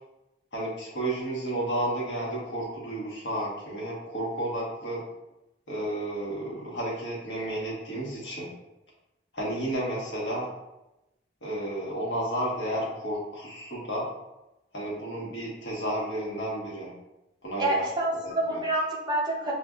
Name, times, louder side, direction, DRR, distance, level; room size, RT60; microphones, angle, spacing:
voice 1, 0.5-5.0 5.7-8.5 9.3-10.5 11.4-14.1 14.7-16.9 17.4-17.8 18.5-18.6, right 1 dB, 80° left, -4 dB, 1.3 m, -32 dB
voice 2, 17.6-19.5, right 1 dB, 25° right, -3 dB, 0.7 m, -27 dB
6.3 x 2.5 x 2.4 m, 0.96 s
head